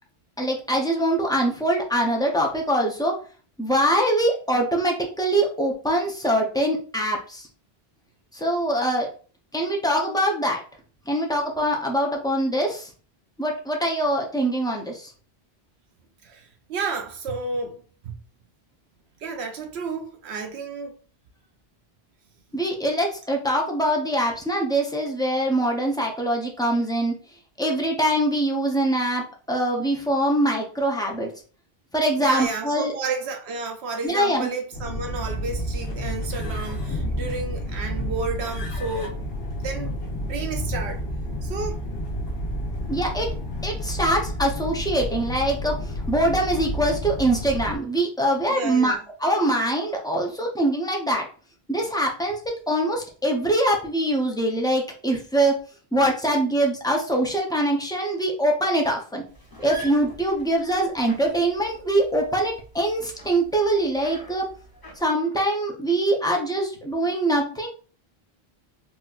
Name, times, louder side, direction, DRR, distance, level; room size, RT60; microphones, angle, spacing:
voice 1, 0.4-3.2 3.6-7.5 8.3-9.1 9.5-10.6 11.1-12.9 13.4-15.1 22.5-27.1 27.6-31.3 31.9-32.9 34.0-34.5 42.9-43.3 43.6-51.3 51.7-52.4 52.7-55.5 55.9-59.2 59.6-64.5 65.0-67.7, right 1 dB, 5° left, 0.4 m, -23 dB
voice 2, 16.2-18.2 19.2-20.9 32.2-39.2 39.5-39.9 40.2-41.0 41.4-41.8 48.5-49.0, right 4 dB, 85° right, 0.9 m, -31 dB
sound 1, 34.7-47.8, equal, 75° left, 1.1 m, -30 dB
sound 2, 59.3-65.0, equal, 25° left, 0.8 m, -45 dB
4.0 x 2.3 x 2.3 m
omnidirectional pair, 1.1 m